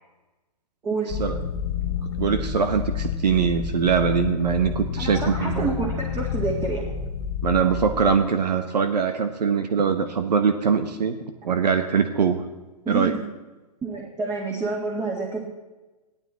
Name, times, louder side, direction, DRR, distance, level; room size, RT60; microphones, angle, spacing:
voice 1, 0.8-1.3 5.0-6.8 12.8-13.2 13.8-15.5, right 3 dB, 15° right, -2 dB, 2.1 m, -28 dB
sound 1, 1.1-8.2, left 7 dB, 40° left, 1.0 m, -29 dB
voice 2, 2.2-5.7 7.4-11.2 11.4-12.4 12.9-13.1, right 6 dB, 75° right, 8 dB, 1.1 m, -22 dB
16.5 x 12.0 x 4.1 m, 1.1 s
hypercardioid pair, 125°, 21 cm